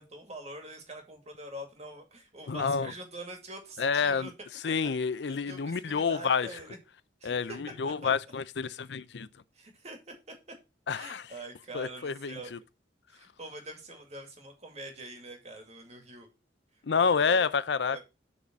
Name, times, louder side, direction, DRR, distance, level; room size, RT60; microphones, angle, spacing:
voice 1, 0.0-4.3 4.7-4.8 5.2-6.8 7.2-7.6 7.8-8.1 9.5-10.0 10.9-12.5 13.1-16.3 16.9-17.5 17.8-18.0, right 2 dB, 40° right, 2.2 m, -44 dB
voice 2, 2.5-2.9 3.8-4.3 4.6-6.5 7.2-9.3 10.9-11.3 11.7-12.6 16.8-18.0, left 5 dB, 80° left, 0.5 m, -28 dB
7.5 x 4.0 x 6.0 m
head